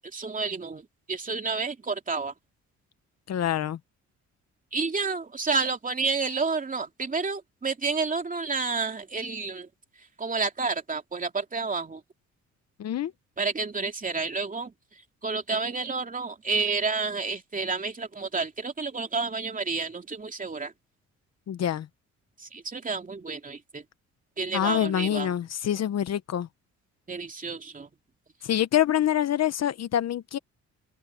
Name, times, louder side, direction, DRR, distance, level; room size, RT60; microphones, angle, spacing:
voice 1, 0.1-2.3 4.7-9.7 10.2-12.0 13.4-14.7 15.2-20.7 22.4-23.8 24.4-25.3 27.1-27.9, right 4 dB, 25° right, 2.9 m, -30 dB
voice 2, 3.3-3.8 12.8-13.1 21.5-21.9 24.5-26.5 28.4-30.4, left 11 dB, 60° left, 1.0 m, -26 dB
open air
cardioid pair, 90°, 30 cm